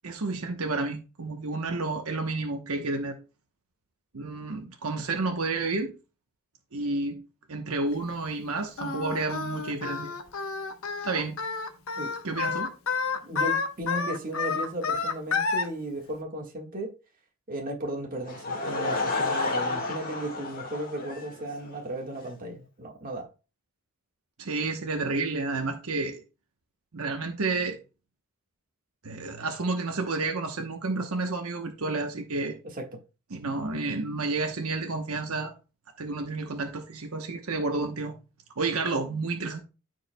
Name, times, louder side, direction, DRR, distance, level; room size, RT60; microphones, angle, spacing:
voice 1, 0.0-3.2 4.1-5.9 6.7-7.2 7.5-10.1 11.0-11.4 12.2-12.7 24.4-26.2 26.9-27.8 29.0-32.6 33.3-35.5 36.0-38.1 38.6-39.6, right 3 dB, 75° right, 1.0 m, -30 dB
Singing, 8.8-15.7, left 5 dB, 65° left, 1.0 m, -30 dB
voice 2, 13.2-16.9 17.5-23.3 32.7-32.8, right 1 dB, 40° right, 1.6 m, -35 dB
Laughter / Crowd, 18.2-21.8, left 3 dB, 40° left, 1.7 m, -31 dB
13.5 x 4.8 x 2.2 m
head